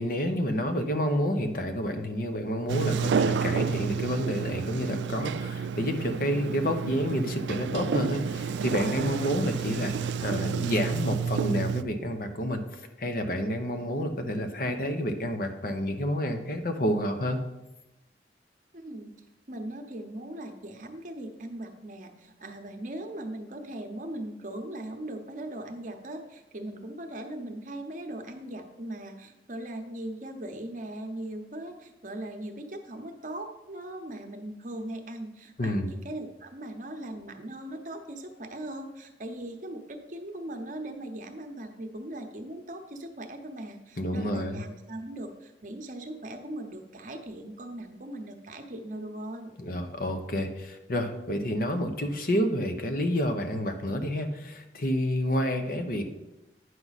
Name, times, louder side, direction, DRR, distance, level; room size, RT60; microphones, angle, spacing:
voice 1, 0.0-17.4 35.6-35.9 44.0-44.6 49.6-56.0, equal, 55° left, 6 dB, 0.8 m, -29 dB
Sliding door, 2.7-11.8, right 6 dB, 80° right, 0.4 m, -30 dB
voice 2, 18.7-19.1 19.5-49.5, right 1 dB, 45° right, 5 dB, 0.8 m, -39 dB
9.4 x 6.1 x 4.1 m, 0.98 s
head